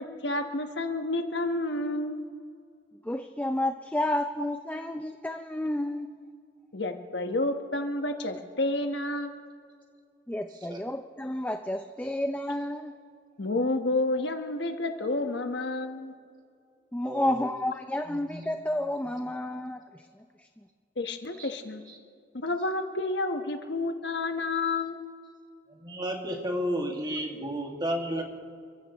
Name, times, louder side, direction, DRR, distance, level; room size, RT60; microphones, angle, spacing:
voice 1, 0.0-2.3 6.7-9.4 13.4-16.1 21.0-21.8 22.3-25.1, left 2 dB, 65° left, 6 dB, 1.3 m, -30 dB
voice 2, 3.0-6.1 10.3-12.9 16.9-20.0, left 1 dB, 10° left, 6 dB, 0.5 m, -31 dB
voice 3, 17.0-17.4 18.1-18.4 21.4-21.5 25.7-28.2, equal, 25° right, 1 dB, 2.1 m, -32 dB
30.0 x 15.0 x 3.1 m, 2.2 s
head